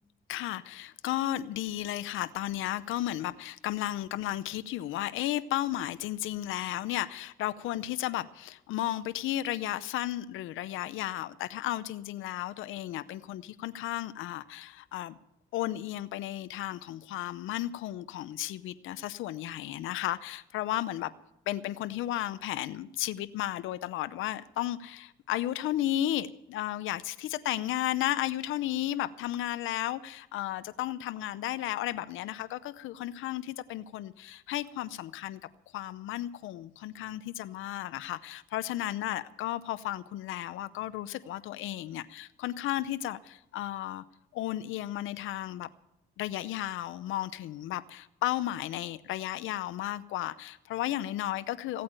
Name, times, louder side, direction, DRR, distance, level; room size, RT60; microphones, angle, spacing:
voice 1, 0.3-15.2 15.5-21.1 21.5-35.4 35.7-44.0 44.3-45.7 46.2-51.8, left 14 dB, 90° left, 0.7 m, -34 dB
16.0 x 8.5 x 8.9 m
cardioid pair, 90°, 20 cm